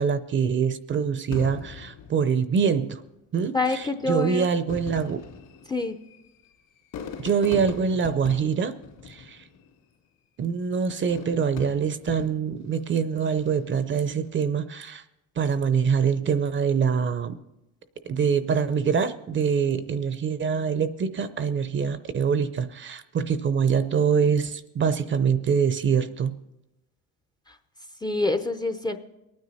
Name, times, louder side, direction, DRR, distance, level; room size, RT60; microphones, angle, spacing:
voice 1, 0.0-3.0 3.3-5.2 7.2-8.8 9.1-9.4 10.4-15.0 15.4-17.4 18.0-26.4, right 6 dB, 35° right, 13 dB, 0.6 m, -24 dB
Fireworks, 1.3-2.9 3.8-3.9 4.5-9.8 10.9-12.7 13.2-13.7, left 6 dB, 65° left, 2.7 m, -40 dB
voice 2, 3.5-4.5 5.7-6.0 27.5-27.6 28.0-29.0, left 3 dB, 10° left, 7 dB, 0.5 m, -26 dB
22.0 x 9.6 x 4.1 m, 0.94 s
cardioid pair, 115°, 36 cm